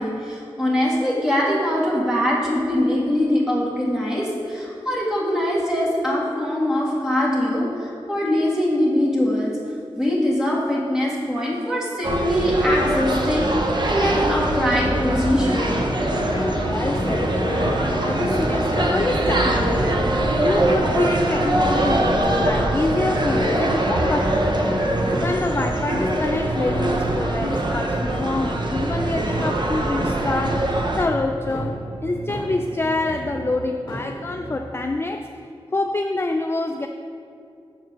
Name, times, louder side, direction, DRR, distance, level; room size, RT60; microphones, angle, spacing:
voice 1, 0.0-9.5 10.0-13.5 13.9-16.0, left 1 dB, 5° right, -6 dB, 2.0 m, -22 dB
sound 1, 12.0-31.0, right 1 dB, 50° right, 0.7 m, -23 dB
sound 2, 15.4-26.9 27.5-27.6 28.1-28.3 28.8-28.9 29.4-29.5 30.0-30.2 30.7-30.8 31.5-31.6 32.3-32.4 33.1-33.2 33.9-34.0, equal, 40° left, 1.3 m, -29 dB
voice 2, 16.6-20.0 20.4-24.9 25.2-35.3 35.7-36.9, left 2 dB, 25° left, 4 dB, 0.3 m, -26 dB
sound 3, 16.9-35.0, right 4 dB, 75° right, 0.4 m, -35 dB
7.4 x 4.6 x 6.7 m, 2.4 s
wide cardioid pair, 95°, 10 cm